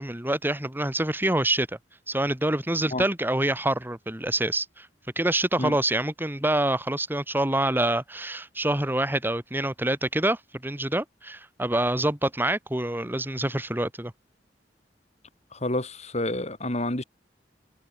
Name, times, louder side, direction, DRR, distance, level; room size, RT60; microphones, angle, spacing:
voice 1, 0.0-1.7 2.1-4.9 5.2-14.1, right 1 dB, 10° right, 2.5 m, -26 dB
voice 2, 15.5-17.0, left 1 dB, 40° left, 4.8 m, -29 dB
head